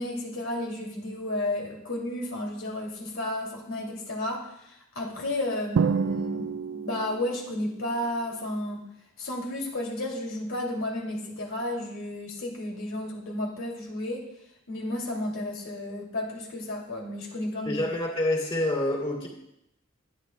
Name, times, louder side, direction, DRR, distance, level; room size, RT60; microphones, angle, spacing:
voice 1, 0.0-8.8 9.2-14.2 14.7-17.8, left 1 dB, 80° left, -1 dB, 2.5 m, -32 dB
Drum, 5.8-7.5, right 6 dB, 70° right, 0.3 m, -28 dB
voice 2, 17.7-19.3, left 1 dB, 30° left, 0 dB, 2.4 m, -27 dB
22.0 x 8.6 x 2.2 m, 0.80 s
head